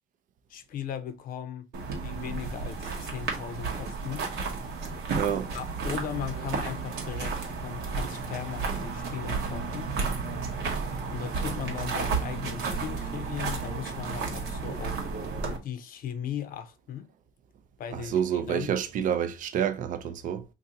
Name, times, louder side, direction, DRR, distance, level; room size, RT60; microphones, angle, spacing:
voice 1, 0.5-1.7 2.0-4.3 5.5-9.9 11.1-15.1 15.6-17.1 17.8-18.7, left 9 dB, 55° left, 0.6 m, -38 dB
sound 1, 1.7-15.6, right 4 dB, 75° right, 1.0 m, -32 dB
voice 2, 5.2-5.5 17.9-20.5, right 9 dB, 50° right, 0.5 m, -28 dB
2.7 x 2.6 x 3.8 m
cardioid pair, 110°, 17 cm